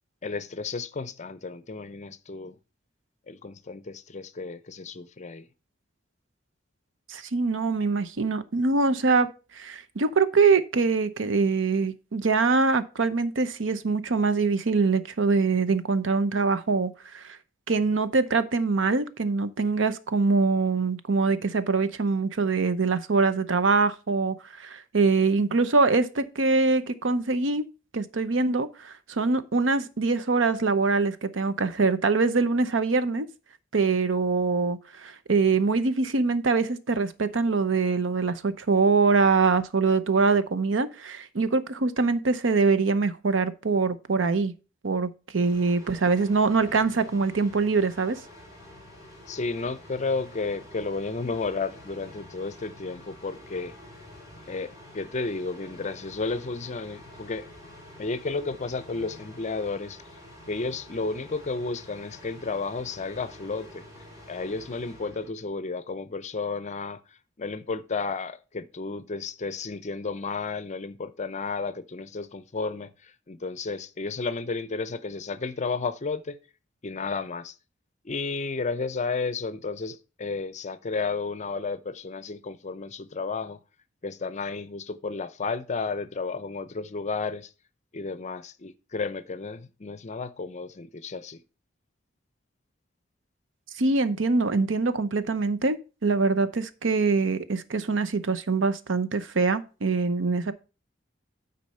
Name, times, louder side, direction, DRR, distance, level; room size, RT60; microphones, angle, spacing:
voice 1, 0.2-2.5 3.3-5.5 49.3-53.7 54.5-57.5 58.0-60.0 60.5-63.8 64.3-67.0 67.4-76.4 76.8-77.5 78.0-83.6 84.0-87.5 87.9-91.4, left 4 dB, 40° left, 0.6 m, -32 dB
voice 2, 7.1-9.3 9.6-17.4 17.7-27.7 27.9-33.3 33.7-44.5 44.8-48.2 93.8-100.5, right 4 dB, 90° right, 0.7 m, -24 dB
sound 1, 45.4-65.3, left 1 dB, 20° right, 3.6 m, -48 dB
9.4 x 4.1 x 5.5 m
head